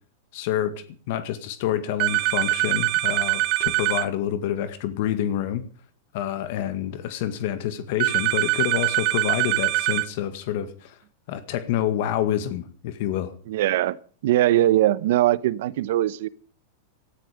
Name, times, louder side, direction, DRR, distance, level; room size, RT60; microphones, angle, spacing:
voice 1, 0.3-0.7 1.1-5.6 6.1-10.9 11.3-13.3, left 11 dB, 60° left, 1.9 m, -27 dB
sound 1, 2.0-4.1 8.0-10.1, right 19 dB, 50° right, 1.0 m, -23 dB
voice 2, 13.5-14.0 14.2-16.3, right 14 dB, 70° right, 1.0 m, -21 dB
18.0 x 13.5 x 5.2 m
supercardioid pair, 140°, 0 cm